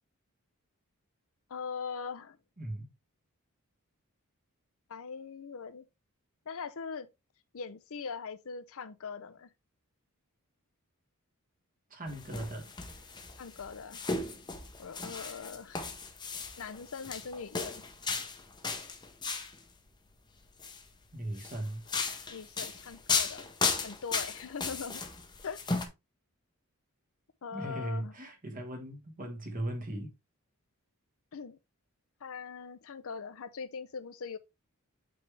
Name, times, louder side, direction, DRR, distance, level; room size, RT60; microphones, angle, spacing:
voice 1, 1.5-2.4 4.9-5.9 6.5-7.1 7.5-9.5 13.4-14.0 14.8-15.8 16.6-17.8 22.3-23.5 23.8-25.0 25.4-25.6 27.4-28.1 31.3-31.6 32.2-34.4, left 5 dB, 65° left, 0.6 m, -41 dB
voice 2, 2.6-2.9 11.9-12.7 21.1-21.8 27.5-30.1, right 1 dB, 40° right, 1.7 m, -38 dB
sound 1, 12.1-19.6 20.4-20.8 21.4-25.9, left 4 dB, 20° left, 0.8 m, -35 dB
8.6 x 3.5 x 3.2 m
head